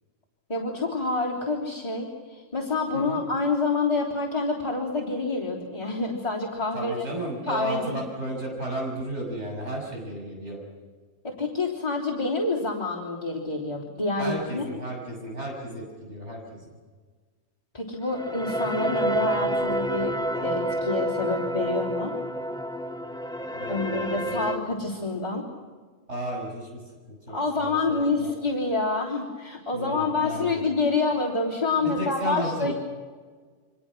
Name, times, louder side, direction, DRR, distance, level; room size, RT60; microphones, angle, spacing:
voice 1, 0.5-6.9 7.5-8.0 11.2-14.6 17.7-22.1 23.7-25.4 27.3-32.7, left 3 dB, 30° left, -6 dB, 3.7 m, -27 dB
voice 2, 2.9-3.2 6.7-10.6 14.2-16.6 23.5-24.5 26.1-26.8 27.1-28.3 29.7-30.6 31.8-32.7, right 1 dB, 60° right, -1 dB, 6.8 m, -34 dB
sound 1, 18.0-24.6, right 1 dB, 5° left, 0.7 m, -29 dB
29.5 x 24.0 x 6.2 m, 1.5 s
omnidirectional pair, 1.3 m